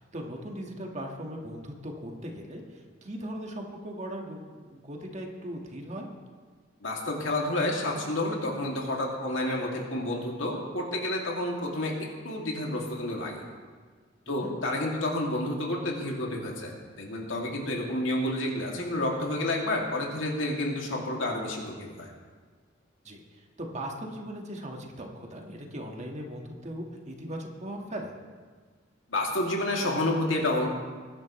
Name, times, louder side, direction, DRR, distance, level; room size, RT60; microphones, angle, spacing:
voice 1, 0.1-6.1 14.3-14.5 23.0-28.1, right 1 dB, 35° right, 1 dB, 1.6 m, -39 dB
voice 2, 6.8-13.4 14.3-22.1 29.1-30.7, left 1 dB, 85° left, -1 dB, 2.4 m, -30 dB
20.5 x 11.0 x 3.2 m, 1.5 s
head